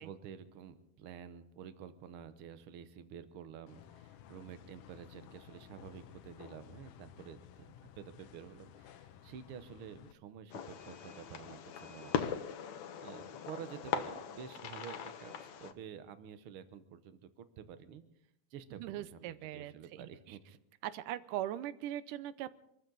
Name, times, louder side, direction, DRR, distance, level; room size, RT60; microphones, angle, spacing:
voice 1, 0.0-12.4 13.0-18.0 18.5-20.4, right 8 dB, 65° right, 11 dB, 1.4 m, -50 dB
sound 1, 3.7-10.1, left 11 dB, 85° left, 2.3 m, -56 dB
Fireworks, 10.5-15.7, left 8 dB, 70° left, 2.1 m, -40 dB
voice 2, 18.8-20.1 20.8-22.5, right 12 dB, 85° right, 15 dB, 2.3 m, -40 dB
25.5 x 14.0 x 4.0 m, 0.77 s
omnidirectional pair, 3.6 m